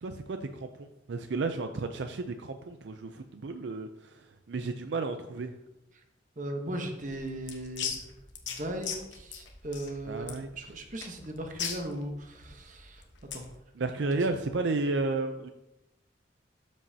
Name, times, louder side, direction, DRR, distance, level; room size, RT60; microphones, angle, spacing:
voice 1, 0.0-5.5 10.1-10.5 13.8-15.5, right 3 dB, 75° right, 7 dB, 0.5 m, -33 dB
voice 2, 6.4-8.0 8.5-13.0 13.3-13.5 14.1-14.3, right 1 dB, 45° right, 4 dB, 1.0 m, -38 dB
sound 1, 7.0-13.5, left 7 dB, 80° left, 1.1 m, -39 dB
12.5 x 5.3 x 2.8 m, 0.92 s
head